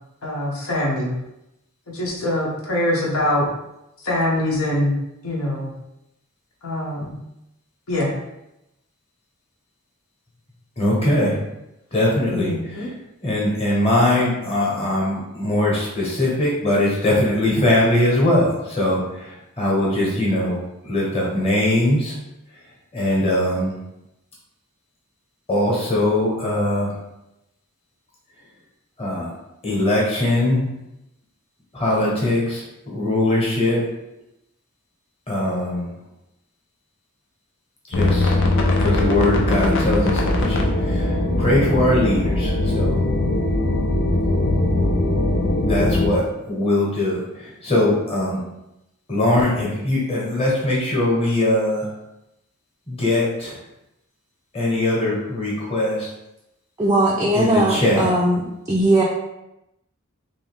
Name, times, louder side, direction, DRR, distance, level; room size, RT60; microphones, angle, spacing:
voice 1, 0.2-1.1 1.9-3.5 4.0-4.9 5.2-5.7 6.6-7.1 7.9-8.1 12.3-12.9, left 1 dB, 80° left, -4 dB, 1.1 m, -23 dB
voice 2, 10.8-11.4 11.9-12.9 13.2-22.1 22.9-23.7 25.5-26.9 29.0-29.3 29.6-30.7 31.7-33.8 35.3-35.9 37.9-38.4 38.8-43.0 45.6-48.4 49.1-51.9 52.9-53.6 54.5-56.1 57.3-58.1, left 1 dB, 25° left, -5 dB, 1.1 m, -21 dB
sound 1, 37.9-46.1, left 2 dB, 60° left, 0.6 m, -20 dB
voice 3, 56.8-58.4 58.7-59.0, right 1 dB, 15° right, -4 dB, 0.4 m, -18 dB
3.5 x 2.7 x 3.5 m, 0.89 s
head